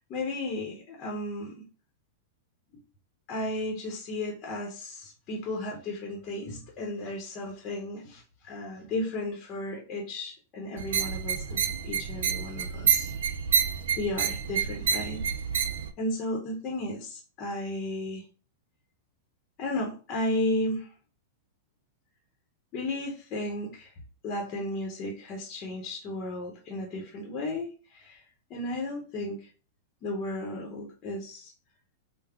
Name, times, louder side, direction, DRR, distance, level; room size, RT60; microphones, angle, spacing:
voice 1, 0.1-1.6 3.3-13.1 14.0-15.3 16.0-18.2 19.6-20.9 22.7-23.9 24.2-28.2 28.5-29.5 30.0-31.5, left 1 dB, 35° left, 0 dB, 0.8 m, -34 dB
sound 1, 10.8-15.9, right 7 dB, 80° right, 0.4 m, -28 dB
3.5 x 2.0 x 3.5 m, 0.37 s
supercardioid pair, 150°, 0 cm